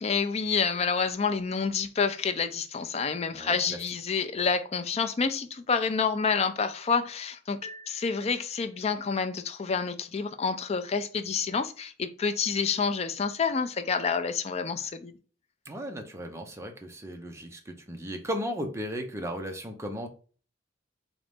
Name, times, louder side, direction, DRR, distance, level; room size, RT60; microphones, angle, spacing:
voice 1, 0.0-7.6 7.9-15.1, left 5 dB, 35° left, 0.4 m, -28 dB
sound 1, 7.6-9.1, left 1 dB, 20° left, 2.1 m, -48 dB
voice 2, 15.7-20.1, equal, 15° right, 0.6 m, -35 dB
3.8 x 3.1 x 3.5 m
head